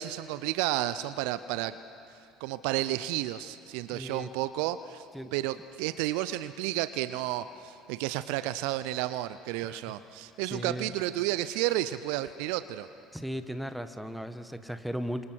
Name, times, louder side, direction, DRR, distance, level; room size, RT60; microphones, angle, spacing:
voice 1, 0.0-1.8 2.4-5.0 5.3-12.9, right 15 dB, 65° right, 14 dB, 0.5 m, -31 dB
voice 2, 3.9-4.3 5.1-5.3 9.6-10.0 10.5-10.9 13.1-15.2, equal, ahead, 10 dB, 1.5 m, -36 dB
30.0 x 26.5 x 4.7 m, 2.7 s
figure-of-eight pair, 60°, 0 cm